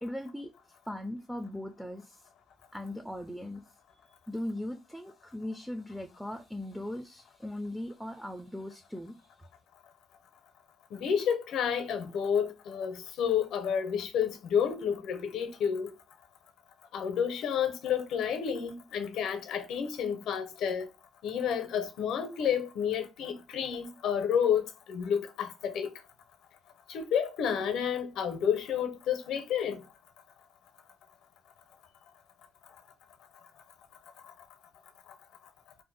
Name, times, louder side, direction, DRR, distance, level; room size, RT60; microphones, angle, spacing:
voice 1, 0.0-0.5 0.9-2.3 2.7-3.6 4.1-9.2, left 1 dB, ahead, 0.4 m, -39 dB
voice 2, 10.9-15.9 16.9-20.9 21.2-25.9 26.9-29.8, left 8 dB, 80° left, 0.6 m, -30 dB
2.6 x 2.1 x 3.8 m
cardioid pair, 90°, 0 cm